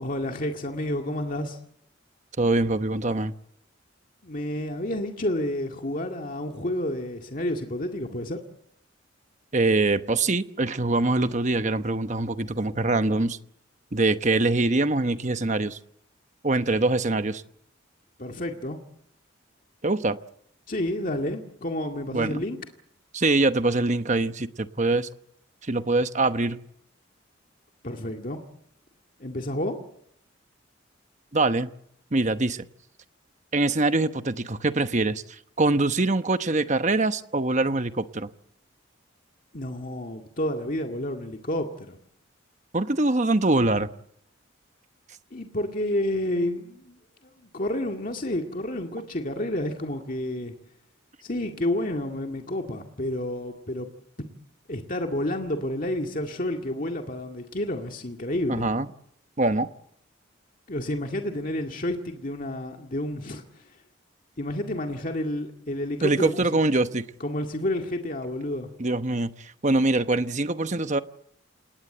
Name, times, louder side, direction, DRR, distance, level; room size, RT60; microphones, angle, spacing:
voice 1, 0.0-1.6 4.2-8.4 18.2-18.8 20.7-22.6 27.8-28.4 29.2-29.8 39.5-42.0 45.3-47.0 47.4-50.5 51.2-53.9 54.2-54.3 54.7-58.7 60.7-63.6 64.4-66.5 67.2-68.7, left 1 dB, 40° left, 3 dB, 2.0 m, -30 dB
voice 2, 2.4-3.3 9.5-13.4 13.9-15.8 16.4-17.4 19.8-20.2 22.1-22.4 23.1-25.1 25.6-26.6 31.3-31.7 32.1-32.7 33.5-38.3 42.7-43.9 58.5-58.9 59.4-59.7 66.0-67.0 68.8-71.0, right 2 dB, 35° right, 10 dB, 1.0 m, -24 dB
28.5 x 19.5 x 8.0 m, 0.73 s
head